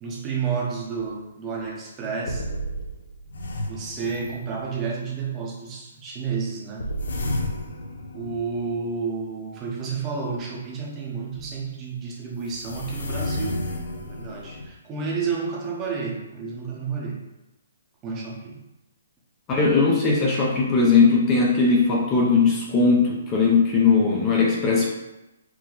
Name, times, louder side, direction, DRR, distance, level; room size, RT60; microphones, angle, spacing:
voice 1, 0.0-2.5 3.7-6.9 8.1-13.6 14.0-17.2 18.0-18.6, right 5 dB, 20° right, -3 dB, 0.8 m, -30 dB
sound 1, 1.0-1.1 1.6-1.7 2.3-4.8 6.8-9.1 11.3-11.5 12.4-14.7, left 1 dB, 80° left, 0.6 m, -32 dB
voice 2, 19.5-24.9, left 4 dB, 20° left, -3 dB, 0.6 m, -19 dB
4.6 x 2.1 x 3.9 m, 0.97 s
hypercardioid pair, 160°, 0 cm